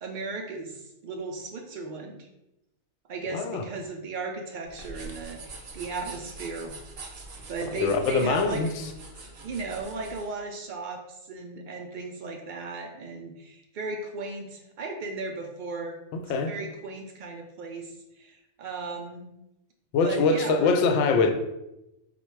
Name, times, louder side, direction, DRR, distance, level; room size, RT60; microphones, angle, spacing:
voice 1, 0.0-2.3 3.1-6.8 7.5-8.6 9.2-16.0 16.3-19.3 20.0-20.7, right 3 dB, 90° right, 2 dB, 0.4 m, -36 dB
voice 2, 3.3-3.6 7.7-8.7 16.1-16.5 19.9-21.3, left 4 dB, 70° left, 6 dB, 0.8 m, -23 dB
sound 1, 4.7-10.3, right 3 dB, 50° right, 0.8 m, -44 dB
4.1 x 2.2 x 4.5 m, 0.90 s
omnidirectional pair, 1.4 m